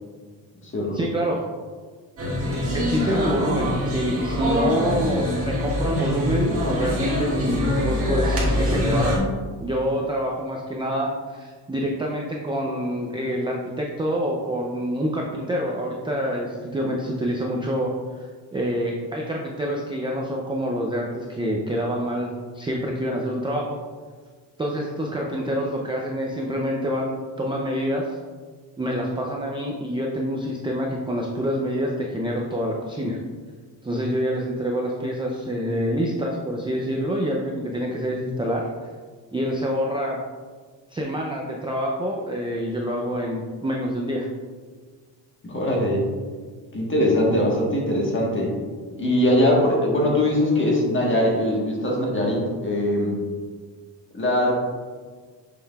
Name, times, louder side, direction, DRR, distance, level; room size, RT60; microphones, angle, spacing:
voice 1, 0.9-1.5 2.7-9.2 9.6-17.9 18.5-23.8 24.6-28.2 28.8-33.2 33.8-38.7 39.3-40.2 40.9-44.3, equal, 10° right, -1 dB, 0.4 m, -26 dB
sound 1, 2.2-9.2, left 1 dB, 30° right, 1.7 m, -24 dB
voice 2, 45.4-46.0 46.7-48.5 49.0-53.2 54.1-54.6, left 1 dB, 25° left, -2 dB, 1.3 m, -21 dB
6.7 x 6.5 x 2.3 m, 1.5 s
cardioid pair, 170°, 44 cm